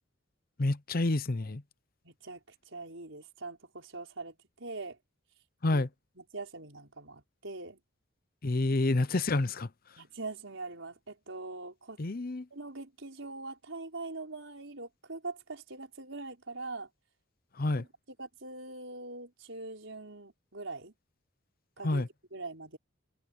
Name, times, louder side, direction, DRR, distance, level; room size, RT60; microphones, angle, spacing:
voice 1, 0.6-1.6 5.6-5.9 8.4-9.7 12.0-12.5 17.6-17.8 21.8-22.1, left 2 dB, 45° left, 0.8 m, -28 dB
voice 2, 2.0-5.0 5.7-5.9 6.2-7.8 10.0-12.0 12.5-16.9 17.8-17.9 18.2-20.9 21.8-22.0 22.3-22.8, right 3 dB, 70° right, 5.0 m, -42 dB
head